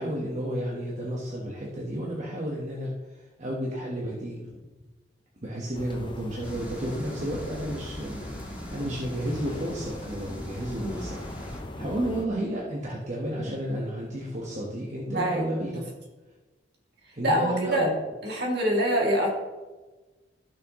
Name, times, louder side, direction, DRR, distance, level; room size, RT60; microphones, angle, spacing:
voice 1, 0.0-2.9 3.4-4.5 5.4-8.3 8.7-11.2 11.7-15.8 17.1-17.9, right 1 dB, 40° right, -3 dB, 1.3 m, -32 dB
sound 1, 5.7-12.3, left 1 dB, 25° left, 0.8 m, -41 dB
sound 2, 6.4-11.6, equal, 10° right, 2.0 m, -42 dB
voice 2, 15.1-15.4 17.2-17.9 18.2-19.4, equal, 65° right, -1 dB, 2.5 m, -25 dB
15.0 x 6.3 x 3.1 m, 1.2 s
head